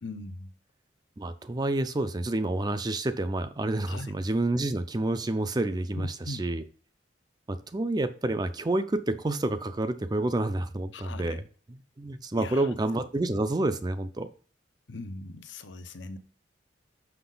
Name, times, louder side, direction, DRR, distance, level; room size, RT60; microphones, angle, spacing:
voice 1, 0.0-0.5 3.9-4.1 5.9-6.4 10.9-11.4 12.3-12.7 14.9-16.2, left 2 dB, 70° left, 0.7 m, -40 dB
voice 2, 1.2-6.6 7.5-11.4 12.0-14.3, right 2 dB, 20° right, 0.4 m, -29 dB
6.2 x 5.9 x 3.9 m
head